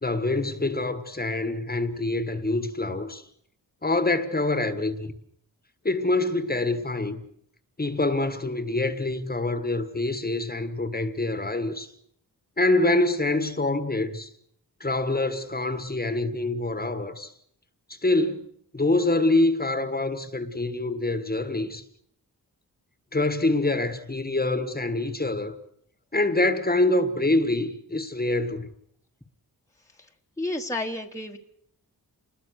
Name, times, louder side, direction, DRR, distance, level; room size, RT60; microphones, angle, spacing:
voice 1, 0.0-3.2 3.8-5.2 5.8-7.2 7.8-11.9 12.6-14.3 14.8-17.3 17.9-18.5 18.7-21.8 23.1-25.6 26.1-28.7, left 2 dB, 25° left, 1.6 m, -25 dB
voice 2, 30.4-31.4, left 2 dB, 10° left, 1.4 m, -31 dB
28.0 x 21.0 x 6.5 m
wide cardioid pair, 135°, 38 cm